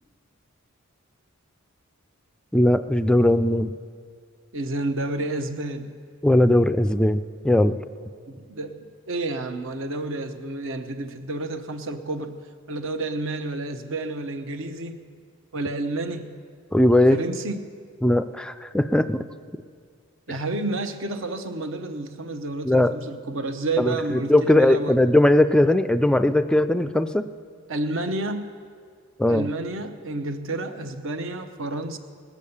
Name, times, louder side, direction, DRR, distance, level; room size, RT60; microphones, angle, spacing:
voice 1, 2.5-3.7 6.2-7.8 16.7-17.2 18.0-19.2 22.6-22.9 23.8-27.3 29.2-29.5, left 1 dB, 5° left, 11 dB, 0.3 m, -19 dB
voice 2, 4.5-5.9 8.3-12.4 12.7-15.0 15.5-16.4 17.1-17.7 20.3-25.0 27.7-28.5 29.3-32.0, right 2 dB, 65° right, 8 dB, 0.9 m, -30 dB
19.5 x 8.3 x 7.1 m, 2.1 s
head